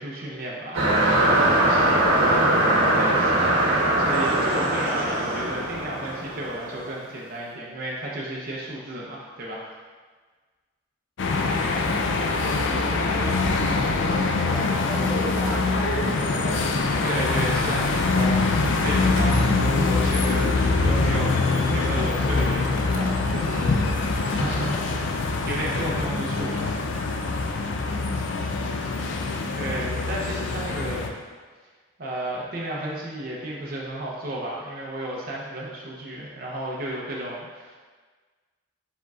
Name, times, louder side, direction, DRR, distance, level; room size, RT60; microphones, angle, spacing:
voice 1, 0.0-9.7 14.2-14.6 17.0-26.8 29.5-31.1 32.0-37.8, right 1 dB, 45° right, -4 dB, 0.6 m, -33 dB
sound 1, 0.7-6.8, right 1 dB, 85° right, 1.0 m, -21 dB
sound 2, 11.2-31.1, left 3 dB, 60° left, 0.4 m, -24 dB
voice 2, 11.3-12.1 12.4-16.7 19.0-19.2 27.9-29.2, equal, ahead, -6 dB, 0.7 m, -37 dB
4.8 x 4.4 x 2.3 m, 1.4 s
head